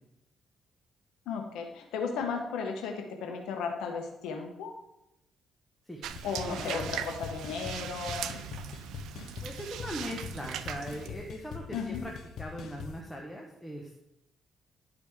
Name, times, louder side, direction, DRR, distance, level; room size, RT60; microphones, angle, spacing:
voice 1, 1.3-4.7 6.2-8.3 11.7-12.0, left 5 dB, 90° left, 3 dB, 1.0 m, -35 dB
sound 1, 6.0-11.1, right 10 dB, 85° right, 0.4 m, -40 dB
sound 2, 6.2-13.0, left 6 dB, 75° left, 0.6 m, -43 dB
voice 2, 6.5-6.9 9.4-14.0, equal, 5° left, 0 dB, 1.1 m, -40 dB
11.5 x 5.0 x 3.5 m, 0.86 s
cardioid pair, 90°, 0 cm